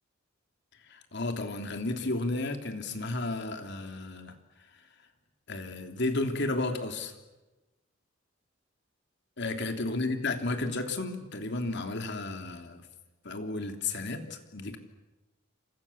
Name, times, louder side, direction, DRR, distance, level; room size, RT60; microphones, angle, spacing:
voice 1, 0.9-4.4 5.5-7.2 9.4-12.9 13.2-14.8, left 2 dB, 60° left, 6 dB, 3.2 m, -33 dB
29.5 x 26.5 x 7.3 m, 1.1 s
head